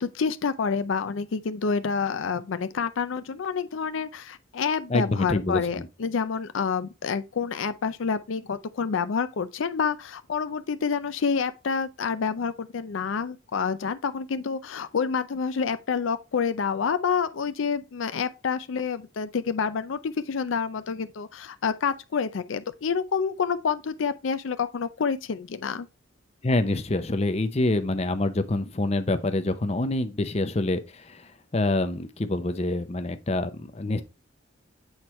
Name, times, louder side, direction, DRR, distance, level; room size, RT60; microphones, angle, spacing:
voice 1, 0.0-25.9, left 6 dB, 80° left, 0.5 m, -28 dB
voice 2, 4.9-5.9 26.4-34.0, left 2 dB, 35° left, 0.6 m, -26 dB
8.0 x 4.4 x 3.1 m
head